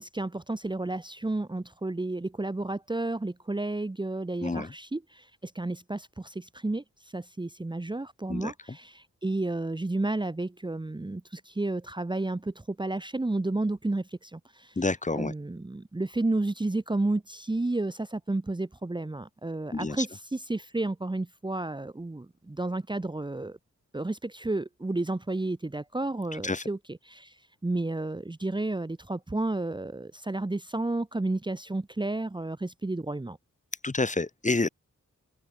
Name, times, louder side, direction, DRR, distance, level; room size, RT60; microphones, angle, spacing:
voice 1, 0.0-14.8 15.1-23.6 23.9-33.4, right 2 dB, 15° right, 1.2 m, -32 dB
voice 2, 4.4-4.7 8.3-8.5 14.8-15.3 19.7-20.1 26.4-26.6 33.8-34.7, left 3 dB, 25° left, 2.0 m, -28 dB
wide cardioid pair, 110°, 31 cm